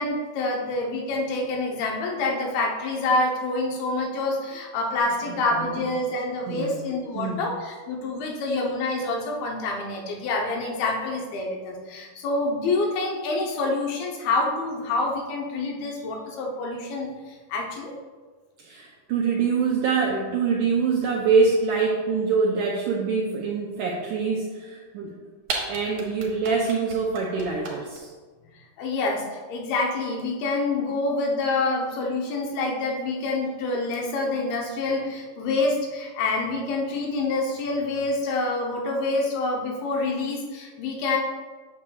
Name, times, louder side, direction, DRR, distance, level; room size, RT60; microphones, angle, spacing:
voice 1, 0.0-17.9 28.8-41.2, left 2 dB, 80° left, -1 dB, 2.8 m, -27 dB
voice 2, 5.3-5.7 6.5-6.8 7.2-7.4 18.6-25.1 25.7-28.1, right 5 dB, 85° right, -2 dB, 1.8 m, -25 dB
sound 1, 25.1-25.2 25.4-28.0, right 4 dB, 65° right, 2.2 m, -32 dB
8.5 x 6.8 x 2.3 m, 1.4 s
omnidirectional pair, 4.3 m